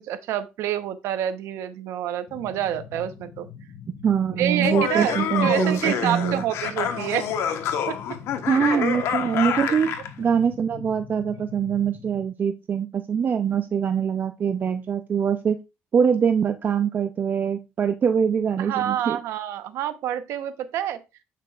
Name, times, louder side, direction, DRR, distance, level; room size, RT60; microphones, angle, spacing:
voice 1, 0.0-3.5 4.4-7.3 7.9-8.0 8.5-8.8 18.6-21.0, right 11 dB, 85° right, 0.9 m, -27 dB
sound 1, 2.3-12.3, left 7 dB, 55° left, 1.0 m, -44 dB
voice 2, 4.0-6.4 8.5-9.9 10.2-15.6 15.9-19.2, right 7 dB, 40° right, 0.5 m, -23 dB
Laughter, 4.5-10.1, left 8 dB, 75° left, 1.1 m, -27 dB
8.5 x 5.8 x 2.4 m
cardioid pair, 110°, 5 cm